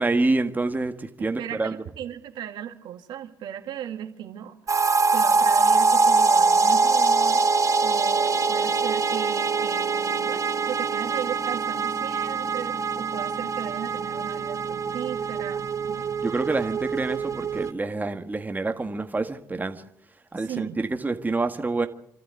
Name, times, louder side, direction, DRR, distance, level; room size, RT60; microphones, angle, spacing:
voice 1, 0.0-1.8 16.2-19.8 20.3-21.9, right 3 dB, 20° right, 1.8 m, -27 dB
voice 2, 1.4-7.4 7.8-16.1 20.4-20.8, right 10 dB, 85° right, 2.2 m, -36 dB
sound 1, 4.7-17.7, right 4 dB, 45° right, 1.4 m, -23 dB
27.5 x 12.5 x 9.5 m
cardioid pair, 75°, 8 cm